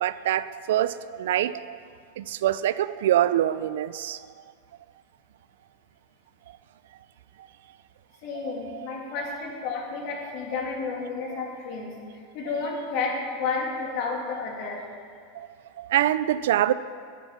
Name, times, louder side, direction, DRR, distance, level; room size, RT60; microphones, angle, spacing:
voice 1, 0.0-1.8 2.2-4.2 8.4-8.9 15.3-15.5 15.8-16.7, right 12 dB, 80° right, 0.4 m, -25 dB
voice 2, 8.2-12.0 12.3-14.9, left 4 dB, 50° left, 2.6 m, -31 dB
9.8 x 9.3 x 6.0 m
supercardioid pair, 150°, 0 cm